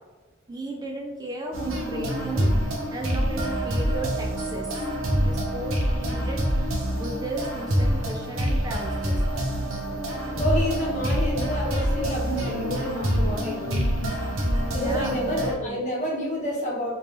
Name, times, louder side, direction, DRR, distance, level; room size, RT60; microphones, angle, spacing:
voice 1, 0.5-2.5 2.9-4.9 5.2-9.2 14.7-15.9, right 1 dB, 20° right, 1 dB, 0.3 m, -35 dB
sound 1, 1.5-15.5, equal, 85° right, 0.9 m, -26 dB
voice 2, 10.3-13.8 14.7-16.9, equal, 40° left, -3 dB, 1.0 m, -29 dB
3.3 x 2.9 x 2.9 m, 1.3 s
head